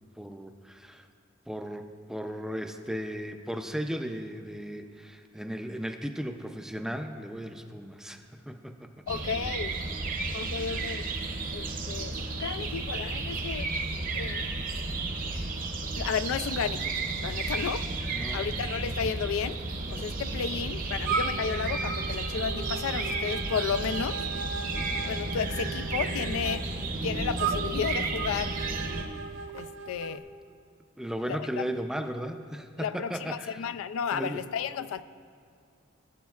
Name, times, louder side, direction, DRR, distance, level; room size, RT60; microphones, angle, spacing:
voice 1, 0.2-1.1 1.5-9.2 10.6-10.7 18.1-18.5 31.0-33.7 34.1-34.4, equal, 5° right, 6 dB, 0.4 m, -36 dB
voice 2, 9.1-9.7 10.3-11.0 11.5-13.7 14.1-14.5 16.0-16.9 17.2-17.8 18.3-19.6 19.9-24.2 25.1-26.6 27.0-28.5 29.5-30.2 31.3-31.6 32.8-35.0, left 7 dB, 80° left, 13 dB, 0.3 m, -33 dB
sound 1, 9.1-29.0, right 3 dB, 45° right, 0.8 m, -32 dB
sound 2, 21.0-30.2, right 6 dB, 65° right, 0.5 m, -37 dB
16.0 x 8.1 x 2.4 m, 2.4 s
head